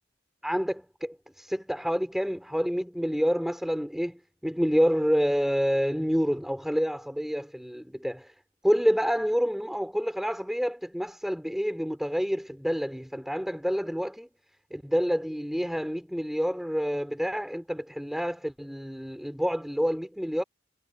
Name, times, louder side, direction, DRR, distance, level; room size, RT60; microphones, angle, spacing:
voice 1, 0.4-8.3 8.6-14.3 14.7-20.4, equal, ahead, 4.8 m, -28 dB
head